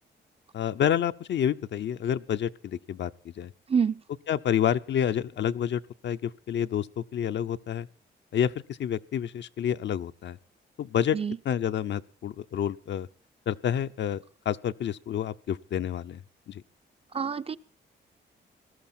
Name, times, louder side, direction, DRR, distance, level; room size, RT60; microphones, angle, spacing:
voice 1, 0.5-3.5 4.3-7.9 8.3-10.4 10.8-11.2 11.4-13.1 13.5-16.2 16.5-16.6, left 9 dB, 65° left, 11 dB, 0.7 m, -29 dB
voice 2, 3.7-4.0 11.1-11.4 17.1-17.6, right 6 dB, 30° right, 12 dB, 0.6 m, -26 dB
18.5 x 13.0 x 4.3 m, 0.43 s
cardioid pair, 95°, 20 cm